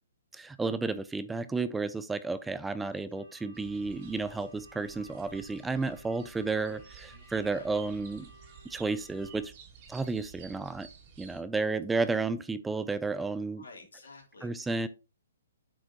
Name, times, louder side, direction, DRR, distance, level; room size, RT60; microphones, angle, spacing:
voice 1, 0.3-8.3 8.6-9.5 9.9-10.9 11.2-13.6 14.4-14.9, right 3 dB, 5° right, 13 dB, 0.3 m, -32 dB
voice 2, 2.8-3.3 7.1-7.8 13.5-14.9, left 3 dB, 80° left, 2 dB, 2.4 m, -53 dB
sound 1, 3.1-9.4, equal, 80° right, 2.6 m, -56 dB
sound 2, 3.5-11.4, right 6 dB, 40° right, 1.8 m, -52 dB
7.7 x 4.7 x 2.8 m, 0.29 s
hypercardioid pair, 140°, 0 cm